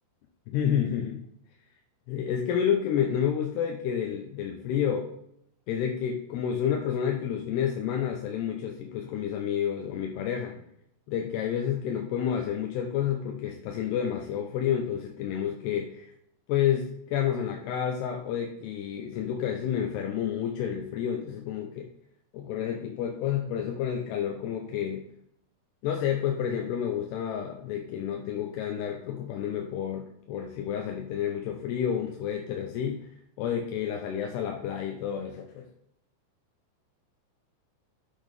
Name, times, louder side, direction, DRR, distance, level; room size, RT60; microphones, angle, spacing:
voice 1, 0.5-1.3 2.1-5.1 5.7-10.6 11.1-16.1 16.5-21.9 22.3-25.1 25.8-33.1 33.4-35.7, left 9 dB, 80° left, 2 dB, 2.7 m, -30 dB
10.0 x 6.2 x 3.4 m, 0.73 s
omnidirectional pair, 5.1 m